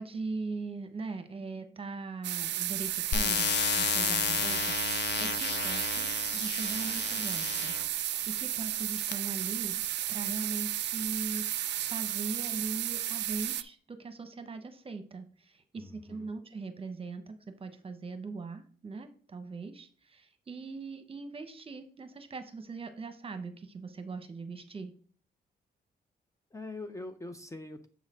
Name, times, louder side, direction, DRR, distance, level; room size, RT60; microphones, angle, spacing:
voice 1, 0.0-9.8 10.1-24.9, right 4 dB, 30° right, 9 dB, 1.0 m, -40 dB
sound 1, 2.2-13.6, right 12 dB, 75° right, 0.4 m, -33 dB
sound 2, 3.1-7.9 8.6-9.1, left 8 dB, 70° left, 0.6 m, -32 dB
voice 2, 15.8-16.3 26.5-27.9, left 2 dB, 15° left, 8 dB, 0.6 m, -43 dB
7.0 x 4.0 x 5.0 m, 0.43 s
cardioid pair, 100°, 18 cm